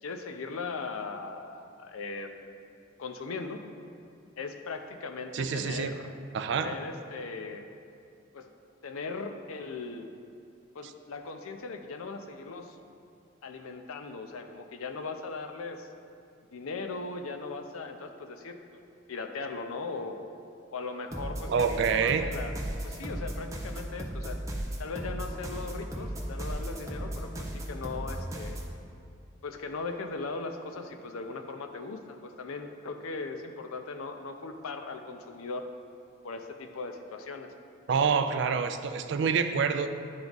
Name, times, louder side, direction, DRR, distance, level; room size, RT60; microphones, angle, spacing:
voice 1, 0.0-2.5 3.0-3.6 4.4-5.9 6.5-7.7 8.3-8.5 8.8-10.1 10.7-12.8 13.4-15.9 16.5-18.8 19.1-20.2 20.7-22.5 22.8-24.4 24.8-28.6 29.4-35.7 36.2-37.5, left 4 dB, 85° left, 6 dB, 0.5 m, -38 dB
voice 2, 5.3-5.9 6.3-6.8 21.5-22.3 37.9-39.9, right 6 dB, 55° right, 9 dB, 0.3 m, -27 dB
sound 1, 21.1-28.7, right 1 dB, 15° right, 0.6 m, -36 dB
10.5 x 3.5 x 3.9 m, 2.4 s
head